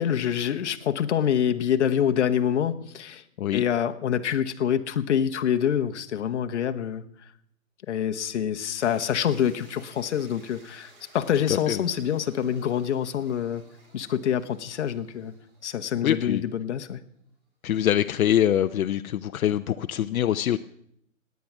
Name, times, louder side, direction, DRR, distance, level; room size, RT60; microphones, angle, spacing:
voice 1, 0.0-3.2 3.5-7.0 7.9-13.6 13.9-15.3 15.6-17.0, left 9 dB, 55° left, 8 dB, 1.1 m, -26 dB
sound 1, 8.7-16.8, right 2 dB, 40° right, 3.6 m, -56 dB
voice 2, 11.5-11.8 16.0-16.4 17.6-20.6, left 11 dB, 80° left, 10 dB, 0.7 m, -24 dB
17.0 x 9.5 x 6.0 m, 0.72 s
hypercardioid pair, 165°, 42 cm